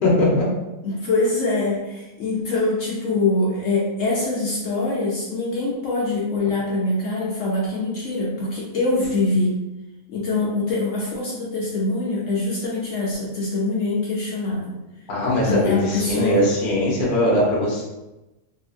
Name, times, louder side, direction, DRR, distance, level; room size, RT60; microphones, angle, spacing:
voice 1, 0.0-0.5 15.1-17.8, left 1 dB, 45° left, -4 dB, 0.8 m, -20 dB
voice 2, 0.8-9.6 10.1-14.8 15.4-16.5, left 2 dB, 70° left, -5 dB, 0.9 m, -24 dB
2.7 x 2.7 x 2.4 m, 1.0 s
omnidirectional pair, 1.5 m